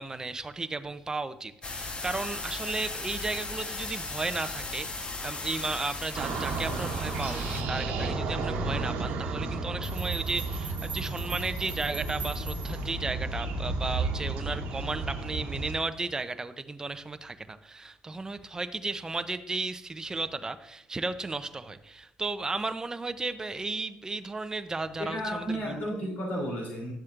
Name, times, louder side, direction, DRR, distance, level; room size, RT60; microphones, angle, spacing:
voice 1, 0.0-26.1, right 3 dB, 20° right, 10 dB, 0.6 m, -34 dB
sound 1, 1.6-7.6, left 3 dB, 35° left, 1.0 m, -37 dB
sound 2, 6.2-15.7, right 3 dB, 85° right, 1.1 m, -32 dB
sound 3, 9.8-13.0, right 6 dB, 40° right, 1.1 m, -43 dB
voice 2, 25.0-26.9, equal, 60° left, -2 dB, 3.1 m, -33 dB
11.5 x 7.5 x 2.5 m, 0.78 s
cardioid pair, 90°, 3 cm